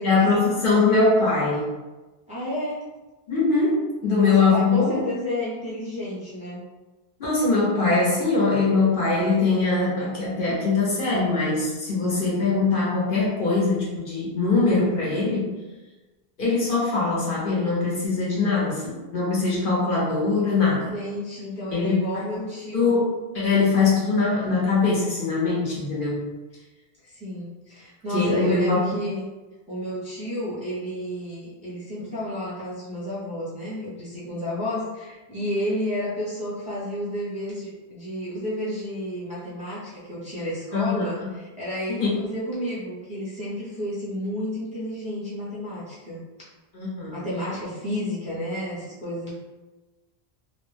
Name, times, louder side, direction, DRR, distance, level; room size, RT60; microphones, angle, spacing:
voice 1, 0.0-1.7 3.3-5.0 7.2-15.5 16.4-20.9 21.7-22.0 22.3-22.4 22.7-26.3 28.1-28.8 40.7-41.3 42.0-42.2 46.7-47.1, left 3 dB, 55° left, -5 dB, 0.8 m, -22 dB
voice 2, 2.3-2.9 4.0-6.6 20.9-22.9 27.0-29.2 29.7-46.2 47.1-49.3, equal, 10° right, -9 dB, 0.6 m, -31 dB
2.4 x 2.0 x 3.2 m, 1.2 s
omnidirectional pair, 1.1 m